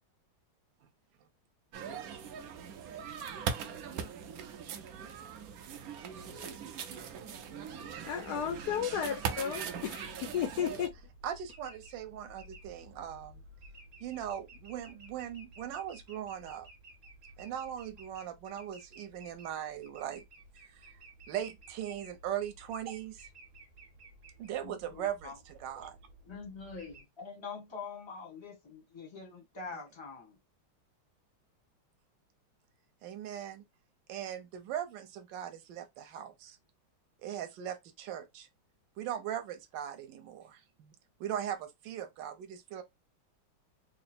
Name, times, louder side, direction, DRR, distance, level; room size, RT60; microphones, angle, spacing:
sound 1, 1.7-10.9, right 7 dB, 85° right, 0.7 m, -40 dB
sound 2, 7.7-27.0, right 1 dB, 45° right, 1.4 m, -55 dB
voice 1, 8.1-10.9, left 9 dB, 80° left, 0.9 m, -34 dB
voice 2, 11.2-13.4 14.0-16.7 17.4-20.2 20.7-20.9 21.3-23.3 24.4-26.0 33.0-33.6 34.1-36.6 37.2-38.5 39.0-40.9 41.2-42.8, right 10 dB, 70° right, 1.3 m, -39 dB
voice 3, 24.6-25.4 26.3-30.4, left 4 dB, 25° left, 0.6 m, -45 dB
3.7 x 2.0 x 4.1 m
omnidirectional pair, 2.3 m